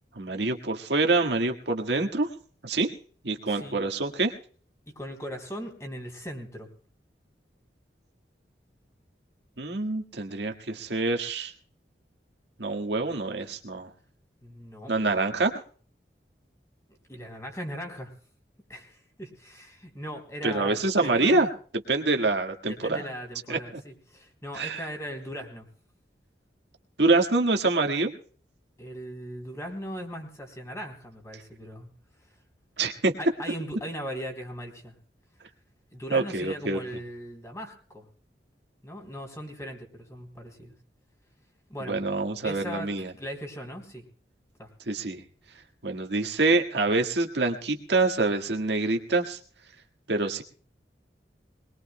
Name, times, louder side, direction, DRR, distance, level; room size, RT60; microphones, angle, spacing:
voice 1, 0.1-2.3 2.6-2.9 3.2-4.3 9.6-11.5 12.6-13.9 14.9-15.5 20.4-21.5 21.9-23.1 23.5-23.6 24.5-24.8 27.0-28.1 32.8-33.1 36.1-36.8 41.9-43.1 44.9-45.2 45.8-49.4 50.1-50.4, right 3 dB, 75° right, 3 dB, 1.7 m, -26 dB
voice 2, 3.5-3.8 4.9-6.7 14.4-14.9 17.1-18.1 18.7-21.4 22.7-25.7 28.8-31.9 33.2-35.0 35.9-38.1 38.8-40.7 41.7-42.0 42.4-44.0 44.6-44.7, equal, 15° left, 2 dB, 3.5 m, -39 dB
22.5 x 21.0 x 2.2 m, 0.44 s
head